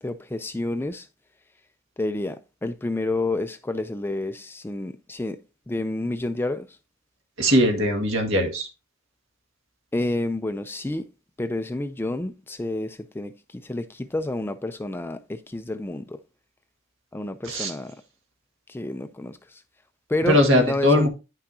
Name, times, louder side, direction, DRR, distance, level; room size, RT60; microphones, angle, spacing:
voice 1, 0.0-1.1 2.0-5.4 5.7-6.7 9.9-11.1 11.4-16.2 17.1-18.0 18.7-19.6 20.1-21.1, left 2 dB, 10° left, 0.3 m, -29 dB
voice 2, 7.4-8.7 17.4-17.7 20.3-21.1, equal, 65° right, 1.9 m, -20 dB
9.7 x 5.9 x 2.7 m
head